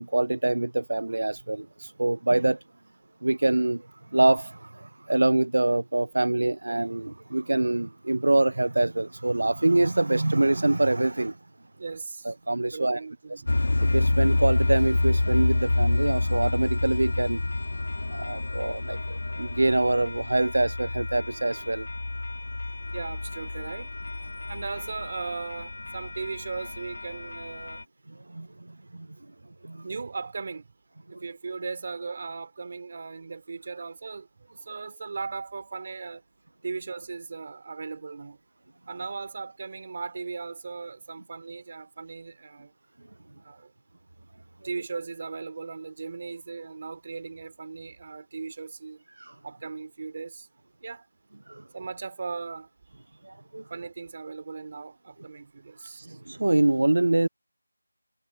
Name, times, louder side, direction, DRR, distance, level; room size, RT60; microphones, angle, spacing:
voice 1, 0.0-2.6 3.2-11.4 12.2-13.0 13.3-13.4 13.8-17.4 18.1-21.9 28.3-29.1 29.6-29.9 31.1-31.2 49.2-49.3 51.5-51.6 53.2-53.6 56.0-57.3, right 2 dB, 60° right, 0.3 m, -25 dB
voice 2, 11.8-12.3 12.7-13.6 22.5-22.6 22.9-23.9 24.5-27.8 29.8-30.7 31.1-36.2 36.6-38.4 38.9-42.7 43.4-43.7 44.6-49.0 49.4-50.5 50.8-51.1 51.7-52.7 53.7-56.2, right 4 dB, 25° right, 3.3 m, -37 dB
sound 1, 13.5-27.8, left 2 dB, 55° left, 1.6 m, -28 dB
figure-of-eight pair, 180°, 0 cm